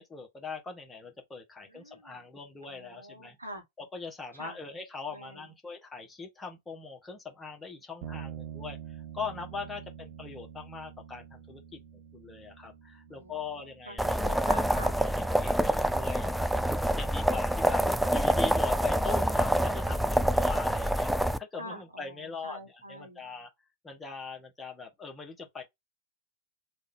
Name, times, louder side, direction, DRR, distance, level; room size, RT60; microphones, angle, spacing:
voice 1, 0.0-3.4 3.9-11.8 12.1-14.6 15.0-16.6 17.0-23.5 23.8-25.6, left 5 dB, 15° left, 1.3 m, -41 dB
voice 2, 1.7-2.3 2.7-3.6 4.3-4.6 5.1-5.5 10.1-10.2 13.0-15.0 21.6-23.2 25.6-25.7, equal, 85° right, 1.3 m, -46 dB
sound 1, 8.0-17.5, right 9 dB, 55° right, 0.9 m, -47 dB
sound 2, 14.0-21.4, equal, ahead, 0.3 m, -26 dB
3.5 x 2.5 x 3.5 m
figure-of-eight pair, 90°, 0 cm